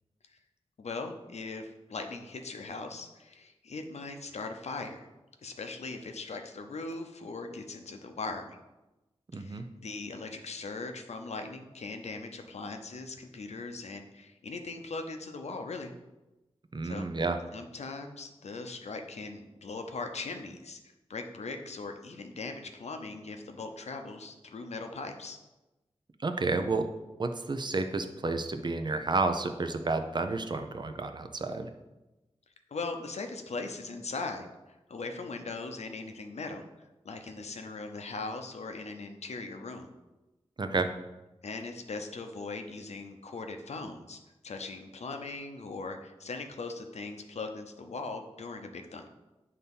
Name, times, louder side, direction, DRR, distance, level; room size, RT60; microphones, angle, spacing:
voice 1, 0.8-5.1 5.4-8.6 9.3-15.9 16.8-17.1 17.5-20.8 21.1-25.4 32.7-36.7 37.0-39.9 41.4-49.1, left 3 dB, 75° left, 5 dB, 0.7 m, -40 dB
voice 2, 9.3-9.6 16.7-17.4 26.2-26.9 27.2-31.7 40.6-40.9, right 3 dB, 40° right, 7 dB, 0.6 m, -30 dB
8.1 x 2.8 x 5.4 m, 1.0 s
wide cardioid pair, 80°, 11 cm